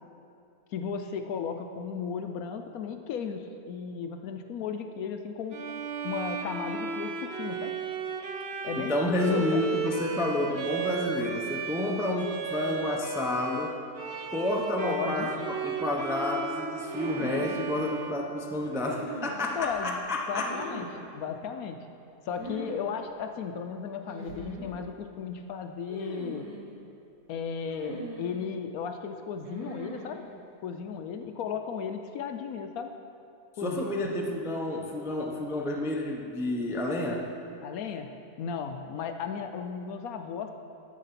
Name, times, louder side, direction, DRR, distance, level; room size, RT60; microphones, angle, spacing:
voice 1, 0.7-5.6 6.0-7.7 8.6-9.7 14.8-15.3 19.6-20.0 20.3-20.9 21.1-21.8 22.3-26.5 27.3-30.2 30.6-32.9 33.6-34.3 37.6-38.1 38.4-40.5, left 6 dB, 70° left, 6 dB, 1.0 m, -35 dB
Bowed string instrument, 5.5-19.0, right 5 dB, 55° right, 0.7 m, -35 dB
voice 2, 8.8-13.8 14.3-20.5 33.6-37.3, left 1 dB, 5° right, 0 dB, 0.4 m, -30 dB
sound 1, 16.8-17.5 18.8-19.7 20.3-21.0 22.3-22.8 23.1-23.2 24.1-24.8 25.9-26.6 27.7-28.4 29.4-30.2, right 1 dB, 75° right, 2.1 m, -41 dB
10.5 x 7.2 x 5.8 m, 2.7 s
omnidirectional pair, 1.7 m